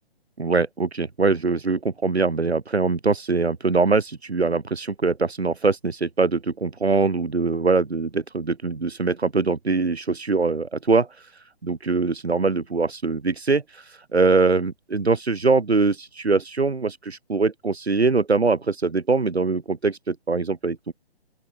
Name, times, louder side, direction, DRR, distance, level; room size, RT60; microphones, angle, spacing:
voice 1, 0.4-20.9, right 4 dB, 90° right, 2.3 m, -23 dB
open air
figure-of-eight pair, 140°, 31 cm